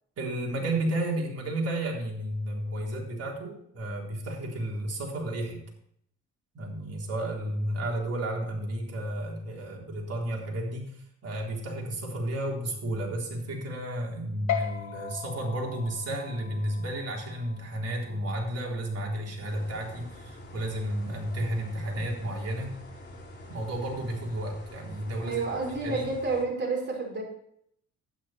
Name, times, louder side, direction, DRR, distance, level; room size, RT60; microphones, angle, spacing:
voice 1, 0.2-5.6 6.5-22.8 23.5-25.4 25.8-26.1, right 1 dB, 55° right, -1 dB, 3.9 m, -32 dB
sound 1, 14.5-21.3, left 10 dB, 75° left, 2.0 m, -39 dB
sound 2, 19.4-26.4, left 1 dB, 35° left, 4.0 m, -46 dB
voice 2, 25.2-27.2, right 3 dB, 35° right, -1 dB, 5.2 m, -30 dB
11.5 x 9.8 x 4.5 m, 0.69 s
cardioid pair, 90°, 30 cm